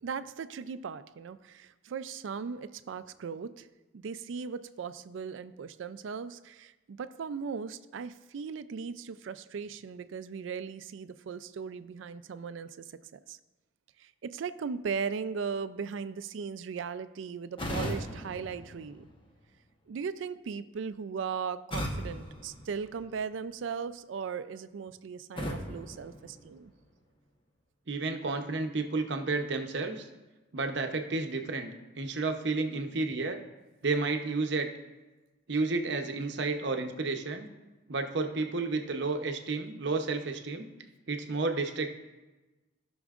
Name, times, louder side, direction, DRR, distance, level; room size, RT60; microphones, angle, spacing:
voice 1, 0.0-3.7 3.9-13.4 14.0-19.1 19.9-26.7, right 6 dB, 80° right, 14 dB, 0.4 m, -38 dB
sound 1, 17.6-19.5 21.7-23.4 25.4-27.0, equal, 25° left, 0.9 m, -38 dB
voice 2, 27.9-30.1 30.5-31.7 31.9-33.4 33.8-34.7 35.5-37.5 37.9-40.7 41.1-41.9, right 3 dB, 65° right, 5 dB, 0.8 m, -31 dB
16.5 x 6.1 x 2.4 m, 1.1 s
head